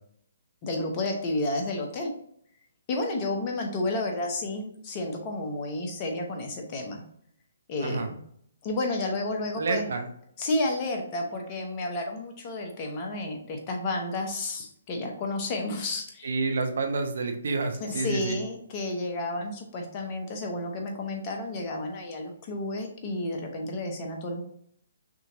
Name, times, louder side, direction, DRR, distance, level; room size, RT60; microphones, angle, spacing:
voice 1, 0.6-2.1 2.9-7.0 7.7-8.2 8.6-9.9 10.4-16.4 17.8-24.4, left 2 dB, 30° left, 2 dB, 1.0 m, -31 dB
voice 2, 9.6-10.1 16.2-18.4, right 3 dB, 60° right, 5 dB, 0.8 m, -29 dB
6.1 x 3.0 x 2.7 m, 0.68 s
figure-of-eight pair, 130°, 0 cm